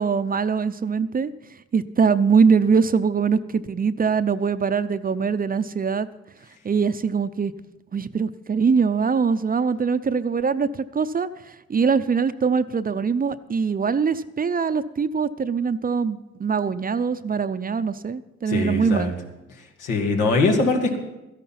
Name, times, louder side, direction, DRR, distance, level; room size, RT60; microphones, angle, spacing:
voice 1, 0.0-1.3 1.7-6.1 6.6-7.5 7.9-19.2, right 5 dB, 30° right, 13 dB, 0.6 m, -22 dB
voice 2, 18.5-19.1 19.8-21.0, left 3 dB, 85° left, 2 dB, 2.4 m, -21 dB
13.5 x 11.0 x 5.9 m, 0.97 s
cardioid pair, 90°, 30 cm